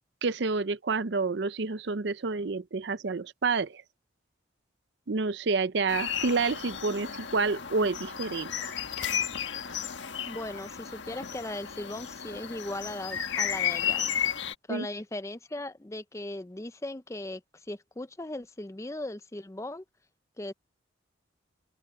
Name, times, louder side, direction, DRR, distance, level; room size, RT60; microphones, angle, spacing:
voice 1, 0.2-3.8 5.1-8.5 14.7-14.9, right 4 dB, 65° right, 0.6 m, -29 dB
sound 1, 5.9-14.5, left 8 dB, 75° left, 1.6 m, -33 dB
voice 2, 10.2-14.1 14.7-17.4 17.7-19.8 20.4-20.5, left 1 dB, 15° left, 0.5 m, -38 dB
open air
head